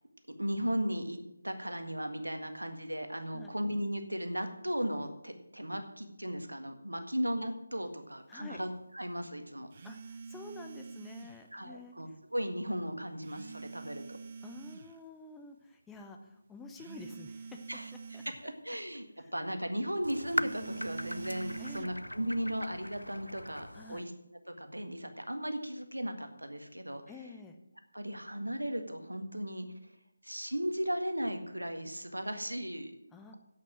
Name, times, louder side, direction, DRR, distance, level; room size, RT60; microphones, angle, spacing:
voice 1, 0.4-1.2 1.4-8.7 8.9-9.7 11.5-14.2 17.7-17.8 18.4-19.0 19.3-24.1 24.6-27.0 27.9-29.7 30.2-32.9, equal, 85° right, 6 dB, 1.7 m, -36 dB
voice 2, 8.3-8.6 9.8-12.1 14.4-17.6 17.9-18.2 19.2-19.3 21.6-22.0 23.7-24.1 27.1-27.6 33.1-33.3, left 3 dB, 5° left, 3 dB, 0.6 m, -49 dB
sound 1, 9.7-11.5 13.2-14.9 16.8-18.5 20.3-21.9, right 5 dB, 35° right, 0.4 m, -46 dB
sound 2, 20.0-24.0, left 1 dB, 85° left, 0.4 m, -39 dB
8.5 x 8.3 x 7.6 m, 0.86 s
figure-of-eight pair, 155°, 0 cm